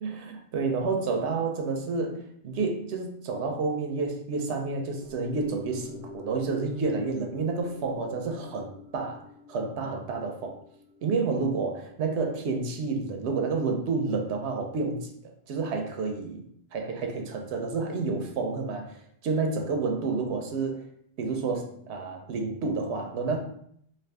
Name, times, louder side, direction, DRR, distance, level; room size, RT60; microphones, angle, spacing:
voice 1, 0.0-9.2 9.5-10.6 11.0-16.4 16.7-20.9 21.2-23.4, right 4 dB, 85° right, 3 dB, 0.8 m, -30 dB
sound 1, 5.0-13.4 13.8-13.9, equal, 25° left, 0.8 m, -48 dB
2.5 x 2.3 x 3.3 m, 0.66 s
omnidirectional pair, 1.1 m